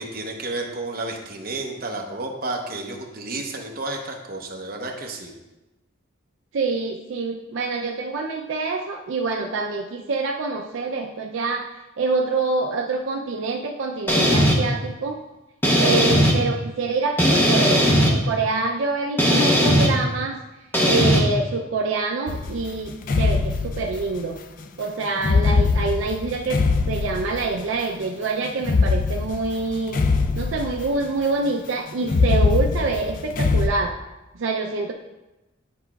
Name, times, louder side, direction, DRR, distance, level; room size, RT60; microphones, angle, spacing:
voice 1, 0.0-5.3, right 2 dB, 45° right, 1 dB, 0.8 m, -31 dB
voice 2, 6.5-11.7 12.0-15.2 15.8-20.4 20.9-24.4 24.8-26.6 26.9-30.0 30.4-33.9 34.4-34.9, right 3 dB, 70° right, 1 dB, 0.4 m, -26 dB
sound 1, 14.1-14.6 15.6-16.3 17.2-18.1 19.2-19.9 20.7-21.2, equal, 10° left, 0.7 m, -17 dB
sound 2, 22.3-24.2 25.2-27.7 28.6-31.1 32.0-33.7, left 4 dB, 40° left, 0.3 m, -22 dB
10.0 x 4.8 x 2.3 m, 1.0 s
head